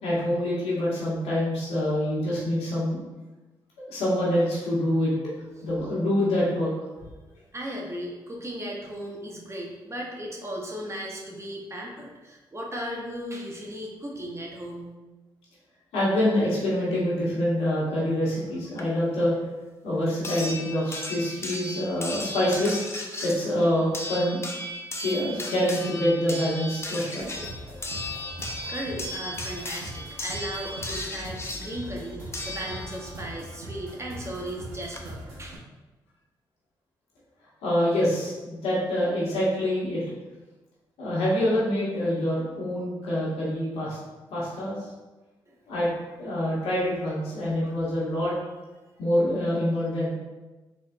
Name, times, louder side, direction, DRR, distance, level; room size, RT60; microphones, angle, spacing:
voice 1, 0.0-3.0 3.9-5.1 5.6-6.7 15.9-19.3 19.8-22.8 23.2-24.4 24.9-27.5 37.6-40.0 41.0-44.0 44.3-44.8 45.7-45.9 46.2-48.3 49.0-50.1, left 1 dB, 80° left, -7 dB, 1.4 m, -26 dB
voice 2, 7.5-14.9 28.7-35.6 45.5-45.6, equal, 30° right, -1 dB, 0.9 m, -36 dB
sound 1, 18.8-18.9 20.2-33.2 34.5-34.6 34.9-35.0, left 1 dB, 25° left, 0.6 m, -36 dB
sound 2, 27.2-35.6, right 1 dB, 90° right, 0.8 m, -41 dB
4.0 x 3.2 x 2.4 m, 1.1 s
supercardioid pair, 55°, 10 cm